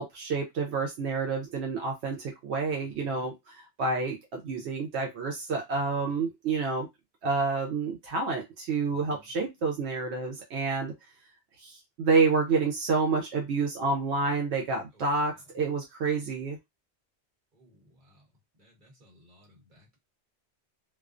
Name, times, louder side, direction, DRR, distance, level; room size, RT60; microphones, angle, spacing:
voice 1, 0.0-6.9 7.2-10.9 11.6-16.6, right 4 dB, 75° right, 0.9 m, -29 dB
voice 2, 2.8-3.2 5.9-6.3 8.9-9.3 14.9-15.1 17.5-18.2 18.6-20.0, left 1 dB, 45° right, 1.2 m, -59 dB
2.3 x 2.2 x 2.4 m
omnidirectional pair, 1.1 m